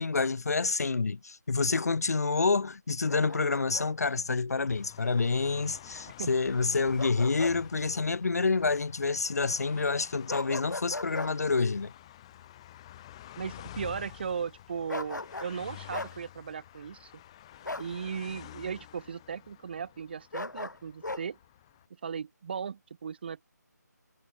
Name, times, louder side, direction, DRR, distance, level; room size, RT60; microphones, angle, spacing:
voice 1, 0.0-11.9, left 4 dB, 60° left, 0.7 m, -28 dB
Bark, 3.1-4.2 7.0-7.6 7.9-8.1 10.3-11.3 14.9-15.6 15.9-16.1 17.6-17.9 20.3-21.2, left 2 dB, 80° left, 1.5 m, -38 dB
sound 1, 4.7-21.9, left 13 dB, 20° left, 0.8 m, -50 dB
voice 2, 13.4-17.1 17.8-21.4 22.0-23.4, right 6 dB, 35° right, 0.8 m, -37 dB
figure-of-eight pair, 155°, 10 cm